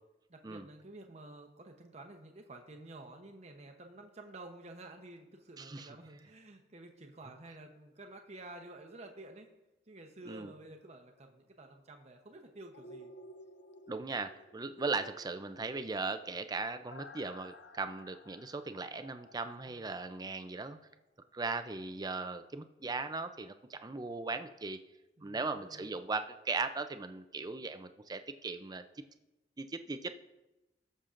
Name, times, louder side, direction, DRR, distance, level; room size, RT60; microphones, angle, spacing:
voice 1, 0.3-9.5 9.9-13.1 25.2-25.9, right 2 dB, 40° right, 3 dB, 0.8 m, -51 dB
voice 2, 5.6-5.9 10.3-10.5 13.9-20.8 21.3-24.8 25.2-28.8 29.6-30.2, right 3 dB, 20° right, 10 dB, 0.5 m, -38 dB
sound 1, 12.7-20.6 21.0-21.1, left 1 dB, 90° left, 0.7 m, -55 dB
20.0 x 6.7 x 2.5 m, 1.0 s
head